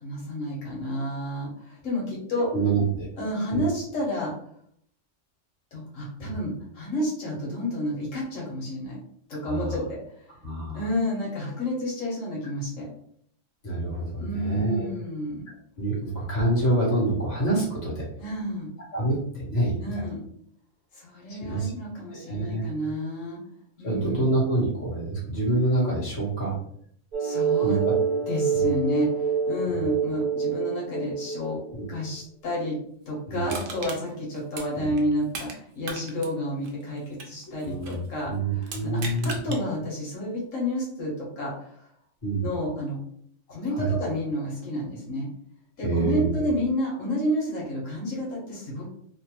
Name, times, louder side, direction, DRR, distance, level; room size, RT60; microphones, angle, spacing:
voice 1, 0.0-2.5 3.2-4.3 5.7-9.0 9.3-10.3 10.7-12.9 14.2-15.5 18.2-18.7 19.8-20.2 20.9-23.4 23.8-24.3 27.2-27.8 28.3-31.6 31.9-32.8 33.1-41.9 42.4-43.0 43.5-45.3 45.8-48.9, left 1 dB, 85° left, -4 dB, 1.3 m, -30 dB
voice 2, 2.5-3.1 3.5-3.6 6.2-6.4 9.4-9.8 10.4-10.8 13.6-14.9 15.8-18.1 18.9-20.1 21.3-21.7 22.1-22.6 23.8-26.6 27.6-27.7 28.5-28.6 29.7-29.8 31.7-31.8 33.3-33.5 34.7-34.8 37.6-38.0 38.2-39.5 42.2-42.5 43.7-43.9 45.8-46.4, right 2 dB, 35° left, -7 dB, 1.3 m, -26 dB
sound 1, 27.1-31.8, right 6 dB, 45° right, 1.1 m, -26 dB
Crushing, 33.5-35.6 35.8-38.1 38.6-39.6 40.1-40.2, right 4 dB, 90° right, 1.0 m, -38 dB
3.1 x 2.1 x 2.9 m, 0.67 s
omnidirectional pair, 1.3 m